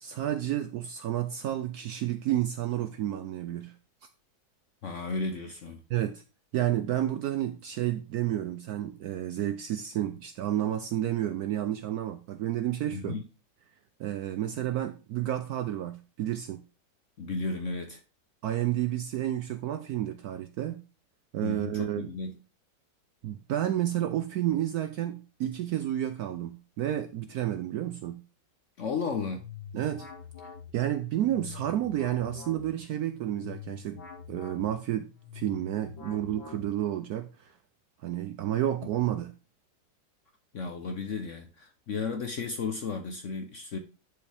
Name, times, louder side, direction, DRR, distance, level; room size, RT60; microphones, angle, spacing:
voice 1, 0.0-3.7 5.9-6.2 6.5-13.2 14.0-16.6 18.4-20.8 21.3-22.0 23.2-28.2 29.7-30.1 30.7-34.0 34.3-35.1 35.3-37.5 38.0-39.3, right 12 dB, 75° right, 0.9 m, -30 dB
voice 2, 4.8-5.8 12.9-13.2 17.2-18.0 21.4-22.3 28.8-29.4 40.5-43.8, left 4 dB, 60° left, 0.8 m, -34 dB
sound 1, 29.0-37.1, left 6 dB, 85° left, 2.8 m, -45 dB
10.5 x 4.9 x 3.4 m
omnidirectional pair, 2.1 m